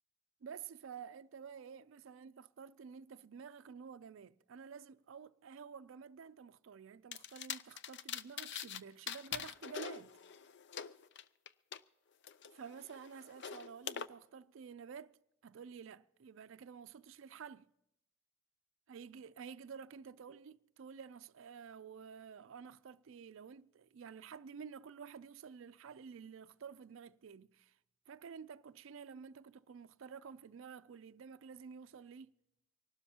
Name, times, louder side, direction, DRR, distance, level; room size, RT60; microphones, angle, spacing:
voice 1, 0.4-10.2 12.5-15.2 15.4-17.7 18.9-27.7 28.1-32.3, right 6 dB, 65° right, 0.4 m, -51 dB
sound 1, 7.1-8.8 9.1-11.8 12.2-14.1, left 8 dB, 60° left, 0.5 m, -44 dB
25.5 x 12.5 x 2.8 m
head